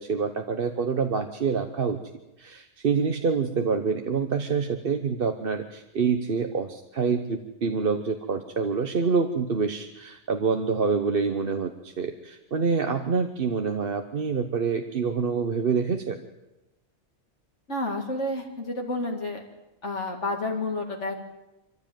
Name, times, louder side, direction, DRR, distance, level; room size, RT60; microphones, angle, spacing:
voice 1, 0.0-2.0 2.4-16.2, right 5 dB, 50° right, 6 dB, 1.2 m, -26 dB
voice 2, 17.7-19.4 19.8-21.2, left 2 dB, 70° left, 1 dB, 2.5 m, -30 dB
24.0 x 15.0 x 9.2 m, 0.97 s
omnidirectional pair, 1.3 m